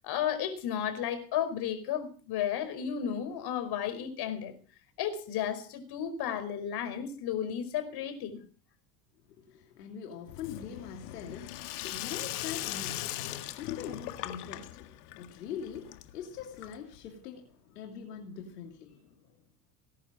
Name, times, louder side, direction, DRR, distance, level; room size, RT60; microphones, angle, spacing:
voice 1, 0.0-4.5 5.0-8.4, left 9 dB, 55° left, 5.0 m, -33 dB
voice 2, 9.4-19.3, left 7 dB, 90° left, 2.9 m, -43 dB
Sink (filling or washing), 10.3-17.1, left 15 dB, 75° left, 1.8 m, -39 dB
19.5 x 11.0 x 6.2 m
hypercardioid pair, 90°, 47 cm